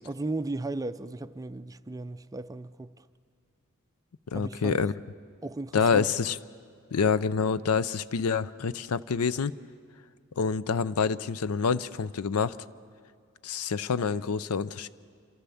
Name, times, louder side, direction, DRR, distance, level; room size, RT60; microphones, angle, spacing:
voice 1, 0.0-3.1 4.3-4.9 5.4-6.1, right 2 dB, 15° right, 0.4 m, -36 dB
voice 2, 4.3-4.9 5.7-6.4 6.9-9.5 10.4-12.6 13.4-14.9, left 5 dB, 80° left, 0.5 m, -27 dB
27.5 x 13.5 x 7.0 m
head